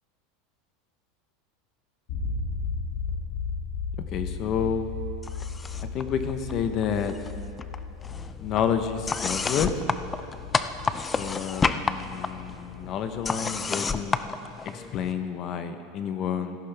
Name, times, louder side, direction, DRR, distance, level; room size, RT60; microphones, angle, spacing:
sound 1, 2.1-14.0, left 5 dB, 60° left, 2.4 m, -36 dB
voice 1, 4.1-4.9 5.9-7.1 8.4-9.8 11.2-14.2 14.6-16.6, left 7 dB, 40° left, 8 dB, 0.9 m, -29 dB
sound 2, 5.2-6.0 6.3-7.3 7.6-15.1, left 4 dB, 15° left, 0.4 m, -31 dB
16.5 x 14.0 x 3.5 m, 2.6 s
supercardioid pair, 145°, 0 cm